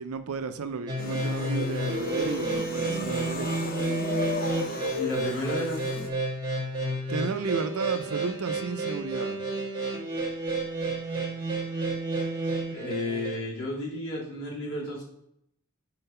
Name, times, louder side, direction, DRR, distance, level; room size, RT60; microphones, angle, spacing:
voice 1, 0.0-3.6 7.1-9.4, right 4 dB, 80° right, 0.5 m, -33 dB
sound 1, 0.9-13.4, right 2 dB, 20° right, 1.3 m, -31 dB
sound 2, 1.0-6.1, left 3 dB, 40° left, 0.6 m, -34 dB
voice 2, 5.0-5.8 12.7-15.0, left 1 dB, 75° left, 2.3 m, -32 dB
4.5 x 3.9 x 5.4 m
head